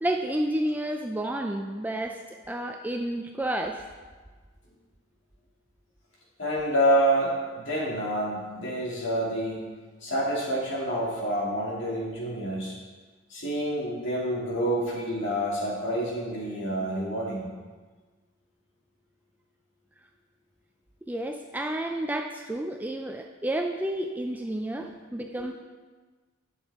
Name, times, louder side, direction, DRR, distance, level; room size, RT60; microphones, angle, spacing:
voice 1, 0.0-3.8 21.1-25.5, right 1 dB, 10° right, 3 dB, 0.3 m, -30 dB
voice 2, 6.4-9.6 10.0-12.7 13.3-17.5, right 1 dB, 55° left, -4 dB, 2.4 m, -28 dB
11.5 x 7.0 x 3.6 m, 1.4 s
head